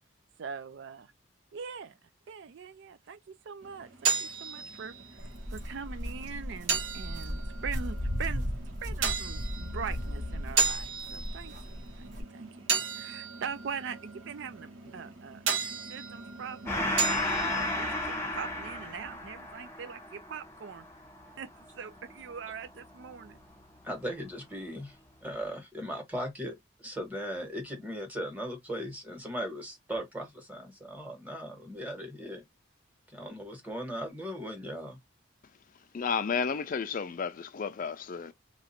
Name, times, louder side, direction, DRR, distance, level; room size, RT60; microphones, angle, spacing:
voice 1, 0.4-1.1 1.5-1.9 2.3-4.9 5.2-8.4 8.8-15.4 15.9-20.8 21.4-23.4, right 6 dB, 60° right, 0.4 m, -42 dB
sound 1, 3.6-19.2, right 5 dB, 85° right, 1.1 m, -35 dB
Walk footsteps, 5.2-12.2, equal, 45° right, 1.1 m, -36 dB
Gong, 16.6-23.6, left 1 dB, 15° left, 0.8 m, -34 dB
voice 2, 23.8-25.0 25.2-26.5 26.8-32.4 33.1-35.0, equal, 10° right, 1.3 m, -38 dB
voice 3, 35.9-38.3, left 6 dB, 45° left, 0.4 m, -32 dB
2.9 x 2.6 x 4.1 m
head